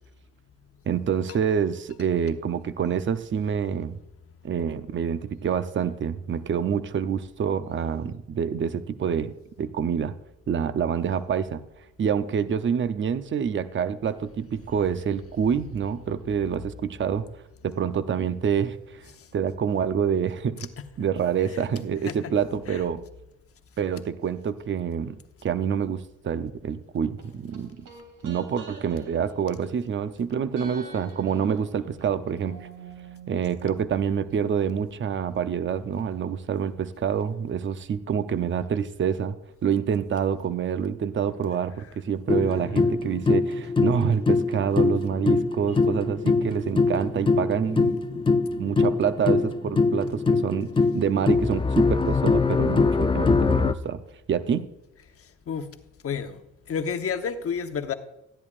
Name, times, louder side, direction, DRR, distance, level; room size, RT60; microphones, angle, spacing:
voice 1, 0.9-4.0 4.4-9.3 9.6-10.1 10.5-11.6 12.0-17.3 17.6-19.1 19.3-20.6 21.0-23.0 23.8-25.1 25.4-27.8 28.2-32.7 33.3-39.4 39.6-48.2 48.6-54.0 54.3-54.7, right 7 dB, 40° right, 12 dB, 0.7 m, -27 dB
sound 1, 27.2-30.2 30.5-34.4 34.6-34.7, right 5 dB, 80° right, 3.3 m, -46 dB
sound 2, 42.3-53.7, left 4 dB, 15° left, 0.5 m, -23 dB
voice 2, 55.2-55.7 56.0-56.4 56.7-57.9, left 6 dB, 50° left, 8 dB, 1.0 m, -30 dB
14.5 x 10.5 x 2.5 m, 0.89 s
cardioid pair, 90°, 30 cm